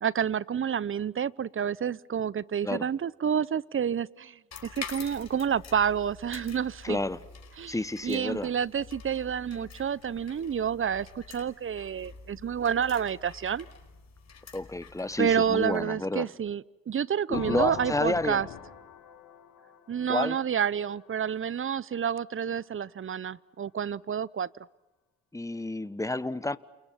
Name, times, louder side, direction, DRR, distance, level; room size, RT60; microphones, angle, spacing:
voice 1, 0.0-7.0 7.6-7.7 8.0-13.7 15.2-18.5 19.9-24.5, right 8 dB, 40° right, 0.9 m, -29 dB
sound 1, 4.5-15.8, left 5 dB, 55° left, 5.2 m, -47 dB
voice 2, 6.8-7.2 7.7-8.5 14.5-16.3 17.3-18.4 20.1-20.4 25.3-26.6, left 2 dB, 10° left, 1.3 m, -30 dB
sound 2, 17.3-21.0, left 10 dB, 80° left, 2.8 m, -42 dB
29.5 x 29.0 x 5.9 m
supercardioid pair, 55°, 31 cm